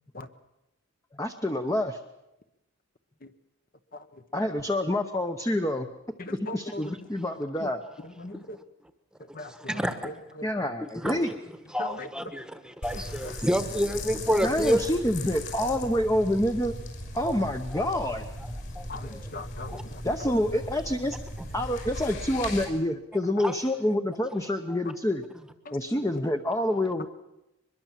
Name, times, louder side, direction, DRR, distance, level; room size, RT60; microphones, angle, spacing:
voice 1, 1.2-2.0 4.3-5.9 6.4-7.8 10.4-11.3 14.4-16.7 17.1-18.2 20.0-21.2 21.5-25.2 25.7-27.1, left 1 dB, 15° left, 6 dB, 0.8 m, -27 dB
voice 2, 6.2-6.8 8.2-8.6 9.3-9.8 10.0-10.5 11.8-12.1 18.9-20.0 25.7-25.8, left 1 dB, 40° left, 9 dB, 1.0 m, -39 dB
voice 3, 9.7-10.1 11.0-11.2 11.7-14.8 17.7-17.8 18.7-18.8 19.7-19.8 23.4-23.5, equal, 5° right, 9 dB, 1.2 m, -28 dB
sound 1, 12.8-22.7, left 1 dB, 55° left, 6.1 m, -38 dB
23.0 x 21.5 x 7.5 m, 0.93 s
head